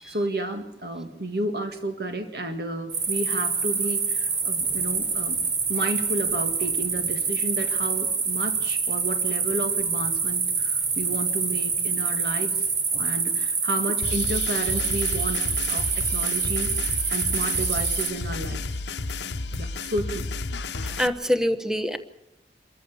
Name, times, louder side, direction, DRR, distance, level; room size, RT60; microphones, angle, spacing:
voice 1, 0.0-5.4 5.7-12.7 13.0-18.6 19.5-20.3 21.2-21.3, right 2 dB, 60° right, 6 dB, 1.9 m, -32 dB
sound 1, 2.9-18.1, right 5 dB, 85° right, 3.5 m, -26 dB
sound 2, 14.0-21.1, left 3 dB, 85° left, 0.9 m, -32 dB
voice 2, 20.8-22.0, equal, 5° right, 10 dB, 0.9 m, -25 dB
27.0 x 14.0 x 7.0 m, 0.84 s
head